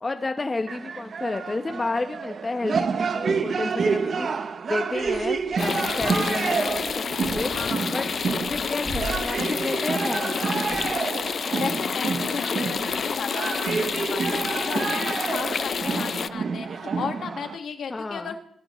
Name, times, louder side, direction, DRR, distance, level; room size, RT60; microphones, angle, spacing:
voice 1, 0.0-7.5 7.9-8.0 8.5-10.5 17.9-18.4, left 3 dB, 30° left, 7 dB, 0.8 m, -31 dB
sound 1, 0.7-17.6, right 5 dB, 55° right, 0.7 m, -29 dB
sound 2, 4.9-6.1 6.5-7.7 8.0-9.5 9.9-10.1 10.4-10.9 11.2-11.3 11.7-12.3 12.7-13.0 13.3-13.6, right 1 dB, 20° right, 6.5 m, -39 dB
sound 3, 5.6-16.3, left 6 dB, 55° left, 0.4 m, -29 dB
voice 2, 7.5-8.0 11.4-13.6 13.9-18.4, left 6 dB, 75° left, 5 dB, 1.6 m, -34 dB
16.5 x 12.5 x 3.1 m, 0.66 s
cardioid pair, 80°, 0 cm